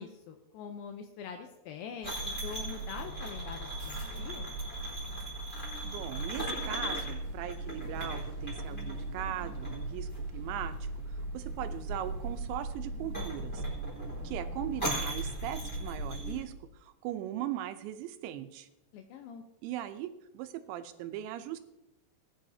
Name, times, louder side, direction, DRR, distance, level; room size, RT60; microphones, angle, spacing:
voice 1, 0.0-4.5 18.9-19.4, left 7 dB, 80° left, 5 dB, 2.1 m, -44 dB
sound 1, 2.0-16.4, right 1 dB, 15° left, 3.8 m, -37 dB
voice 2, 5.8-10.9 11.3-13.6 14.2-16.5 16.8-18.7 19.6-21.6, right 12 dB, 90° right, 9 dB, 3.0 m, -39 dB
19.5 x 10.5 x 2.8 m, 0.93 s
omnidirectional pair, 5.1 m